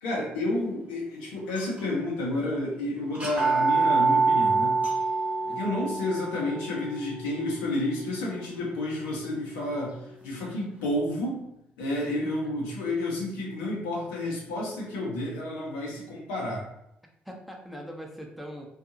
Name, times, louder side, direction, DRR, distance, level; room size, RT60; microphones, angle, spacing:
voice 1, 0.0-4.8 5.6-10.0 10.2-11.5 11.8-16.6, left 1 dB, 80° left, -4 dB, 0.7 m, -30 dB
sound 1, 1.5-2.1 2.4-2.5 3.1-9.0, right 4 dB, 25° right, 1.1 m, -27 dB
voice 2, 17.3-18.7, equal, ahead, 1 dB, 0.6 m, -42 dB
2.6 x 2.4 x 2.6 m, 0.81 s
hypercardioid pair, 45°, 5 cm